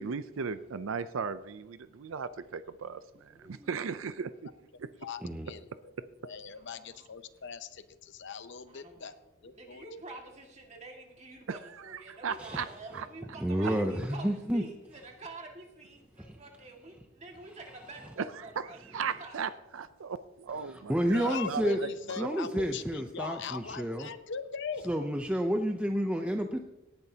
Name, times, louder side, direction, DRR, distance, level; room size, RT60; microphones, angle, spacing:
voice 1, 0.0-4.5 4.8-4.9 11.5-11.6 11.8-12.7 12.9-13.1 18.3-18.7 18.9-22.3, right 6 dB, 65° right, 13 dB, 0.5 m, -37 dB
voice 2, 5.0-5.9 6.2-9.1 9.4-9.8 21.1-25.0, left 6 dB, 55° left, 11 dB, 0.7 m, -40 dB
voice 3, 6.5-7.1 8.7-9.2 9.4-19.3, right 2 dB, 35° right, 1 dB, 1.9 m, -48 dB
voice 4, 13.4-14.6 16.3-16.4 20.7-21.8 22.2-24.1 24.9-26.6, equal, 5° right, 4 dB, 0.5 m, -30 dB
18.0 x 11.0 x 2.8 m, 1.0 s
head